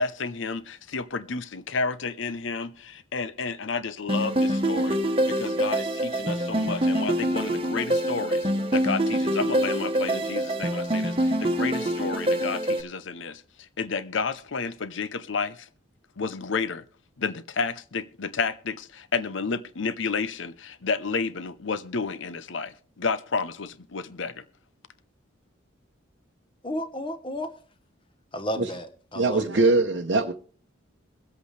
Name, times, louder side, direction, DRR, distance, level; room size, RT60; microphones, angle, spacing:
voice 1, 0.0-15.7 16.2-16.8 17.2-24.4, left 4 dB, 70° left, 0.7 m, -31 dB
sound 1, 4.1-12.8, right 1 dB, 30° right, 1.1 m, -25 dB
voice 2, 26.6-27.5 28.3-29.7, equal, 25° left, 1.2 m, -33 dB
voice 3, 29.1-30.3, right 3 dB, 60° right, 0.9 m, -22 dB
23.0 x 8.1 x 3.3 m
head